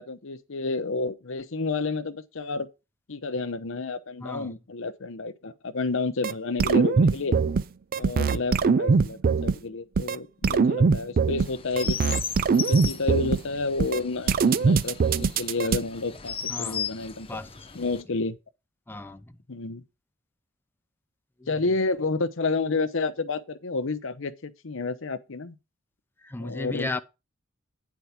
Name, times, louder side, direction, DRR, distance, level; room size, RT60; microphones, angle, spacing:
voice 1, 0.0-2.7 3.1-7.4 8.0-12.2 12.5-17.4 17.8-18.4 19.5-19.8 21.5-25.6 26.4-26.9, left 3 dB, 70° left, 0.8 m, -30 dB
voice 2, 4.2-4.6 16.5-16.9 17.3-17.8 18.9-19.4 21.4-21.7 26.2-27.0, left 2 dB, 10° left, 0.5 m, -36 dB
sound 1, 6.2-6.3 6.6-7.6 7.9-9.5 10.0-10.2 10.4-11.5 11.8-13.4 13.8-14.0 14.3-15.8, right 5 dB, 45° right, 0.4 m, -21 dB
Chirp tweet, 11.4-18.0, left 7 dB, 25° left, 0.9 m, -37 dB
9.5 x 4.6 x 5.8 m
head